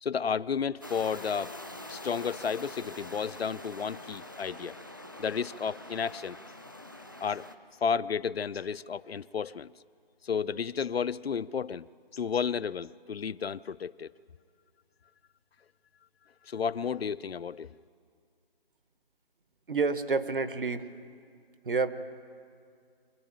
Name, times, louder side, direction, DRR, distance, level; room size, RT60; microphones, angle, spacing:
voice 1, 0.0-1.5 1.9-4.8 5.2-6.4 7.2-7.5 7.8-9.7 10.2-14.1 16.4-17.7, left 6 dB, 90° left, 18 dB, 0.5 m, -32 dB
sound 1, 0.8-7.5, left 1 dB, 20° right, 0.6 m, -45 dB
voice 2, 19.7-20.9 21.6-21.9, right 4 dB, 60° right, 11 dB, 1.2 m, -28 dB
24.5 x 14.0 x 8.9 m, 2.3 s
figure-of-eight pair, 170°, 30 cm